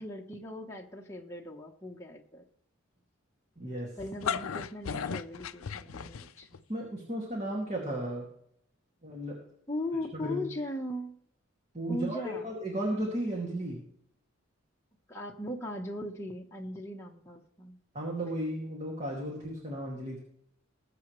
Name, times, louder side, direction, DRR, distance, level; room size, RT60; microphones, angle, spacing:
voice 1, 0.0-2.4 4.0-6.5 9.7-11.2 11.9-12.5 15.1-17.8, left 1 dB, 15° left, -1 dB, 1.1 m, -38 dB
voice 2, 3.6-3.9 6.7-8.2 9.0-9.3 10.1-10.5 11.7-13.8 17.9-20.2, right 1 dB, 30° right, -1 dB, 2.4 m, -34 dB
sound 1, 4.0-6.6, left 6 dB, 85° left, 0.5 m, -35 dB
20.5 x 7.7 x 3.2 m, 0.71 s
head